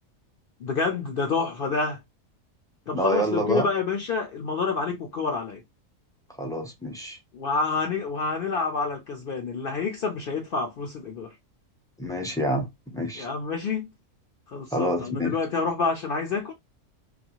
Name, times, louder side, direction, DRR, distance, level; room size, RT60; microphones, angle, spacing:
voice 1, 0.6-2.0 2.9-5.6 7.3-11.3 13.2-13.9 14.5-16.5, left 4 dB, 65° left, 0.5 m, -28 dB
voice 2, 2.9-3.7 6.4-7.2 12.0-12.7 12.9-13.3 14.7-15.3, equal, 5° left, 0.3 m, -27 dB
2.6 x 2.3 x 2.8 m
omnidirectional pair, 1.4 m